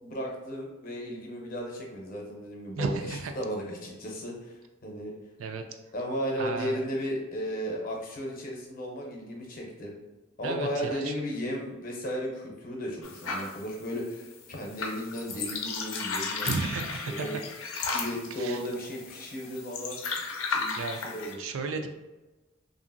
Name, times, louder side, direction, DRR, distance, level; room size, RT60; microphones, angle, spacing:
voice 1, 0.0-4.6 4.8-5.1 5.9-9.9 10.4-16.5 16.9-17.4 17.9-20.0 20.5-21.4, equal, 45° left, 0 dB, 0.7 m, -35 dB
voice 2, 2.7-3.3 5.4-5.6 6.4-6.9 10.4-11.1 16.4-17.3 18.4-18.6 20.8-21.0 21.4-21.9, right 4 dB, 85° right, 6 dB, 0.3 m, -33 dB
sound 1, 13.0-21.3, left 4 dB, 80° left, 0.5 m, -35 dB
2.8 x 2.6 x 2.5 m, 1.1 s
head